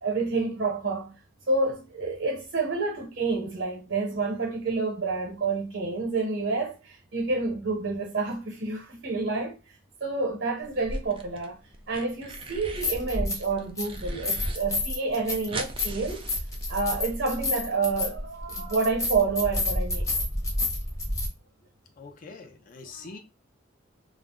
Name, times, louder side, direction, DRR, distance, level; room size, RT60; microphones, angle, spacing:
voice 1, 0.0-1.2 1.5-9.6 10.0-11.6 11.9-16.3 16.7-20.0 22.9-23.1, right 3 dB, 70° right, 0.8 m, -29 dB
sound 1, 10.8-11.5 11.7-13.0 13.4-14.6 14.9-15.0 15.1-17.1, right 3 dB, 30° right, 0.4 m, -41 dB
sound 2, 10.9-11.0 12.5-13.5 13.8-21.3, left 2 dB, 15° left, 0.8 m, -30 dB
voice 2, 22.0-23.2, left 4 dB, 45° left, 0.5 m, -44 dB
2.3 x 2.0 x 3.6 m
head